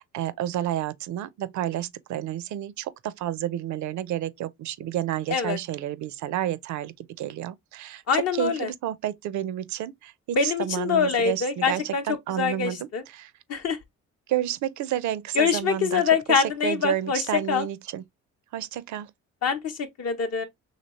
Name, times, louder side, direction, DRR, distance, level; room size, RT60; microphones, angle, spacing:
voice 1, 0.0-8.0 8.4-13.3 14.3-18.0 18.5-19.1, right 12 dB, 70° right, 0.5 m, -30 dB
voice 2, 8.1-8.7 10.3-12.0 12.4-13.0 13.5-13.8 15.4-17.7 19.4-20.4, left 6 dB, 55° left, 0.7 m, -24 dB
3.0 x 2.8 x 2.8 m
cardioid pair, 90°, 30 cm